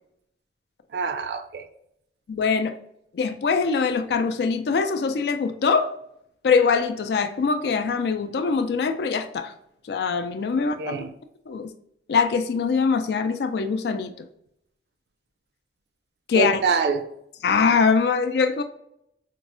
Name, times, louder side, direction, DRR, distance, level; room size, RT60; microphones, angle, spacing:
voice 1, 0.9-1.7 10.6-11.1 16.3-17.1, right 5 dB, 60° right, 8 dB, 0.3 m, -26 dB
voice 2, 2.3-2.7 3.1-5.9 6.4-9.5 9.9-11.0 11.5-11.7 12.1-14.1 16.3-16.6 17.4-18.6, left 5 dB, 65° left, 8 dB, 0.3 m, -23 dB
4.4 x 2.0 x 2.5 m, 0.75 s
head